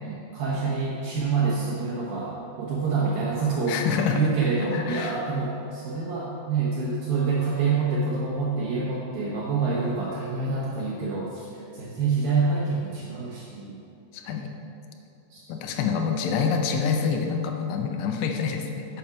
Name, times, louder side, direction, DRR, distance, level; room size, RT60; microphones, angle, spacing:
voice 1, 0.0-3.8 4.1-13.8 15.3-15.4, right 4 dB, 85° right, -5 dB, 2.0 m, -27 dB
voice 2, 3.7-4.2 4.7-5.2 14.1-14.5 15.5-18.9, left 6 dB, 85° left, 3 dB, 2.4 m, -26 dB
8.6 x 7.1 x 5.9 m, 2.7 s
omnidirectional pair, 5.7 m